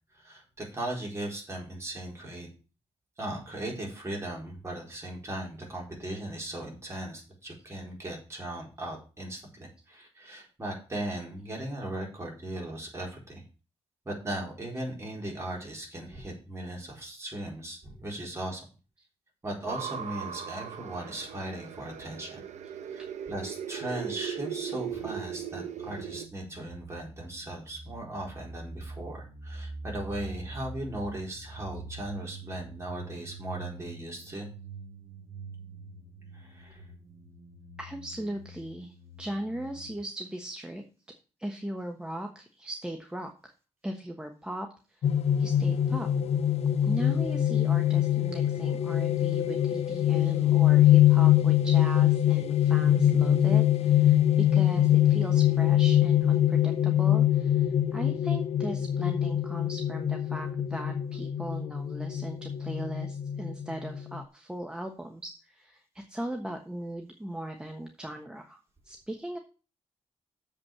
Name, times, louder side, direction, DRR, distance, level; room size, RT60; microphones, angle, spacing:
voice 1, 0.1-2.5 3.2-13.4 14.0-18.6 19.4-22.4 22.9-34.5 36.3-36.8, right 1 dB, 25° right, -2 dB, 4.3 m, -38 dB
sound 1, 19.7-26.3, right 8 dB, 85° right, 0.9 m, -38 dB
sound 2, 24.9-40.0, right 3 dB, 50° right, 1.9 m, -45 dB
voice 2, 37.8-40.8 41.4-43.5 43.8-45.1 45.4-46.1 46.8-68.6 68.8-69.4, right 1 dB, 5° right, 3 dB, 1.2 m, -38 dB
sound 3, 45.0-64.2, left 11 dB, 65° left, 0.5 m, -24 dB
7.4 x 5.5 x 7.3 m, 0.34 s
cardioid pair, 115°, 12 cm